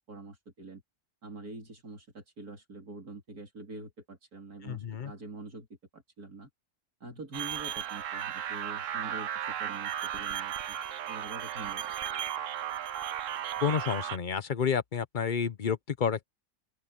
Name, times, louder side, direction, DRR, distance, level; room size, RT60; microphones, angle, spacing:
voice 1, 0.1-0.8 1.2-5.7 5.9-6.5 7.0-10.8 11.1-11.9, right 3 dB, 80° right, 4.2 m, -45 dB
voice 2, 4.6-5.1 13.6-16.2, left 7 dB, 40° left, 0.8 m, -30 dB
sound 1, 7.3-14.2, right 10 dB, 65° right, 1.1 m, -35 dB
open air
omnidirectional pair, 1.6 m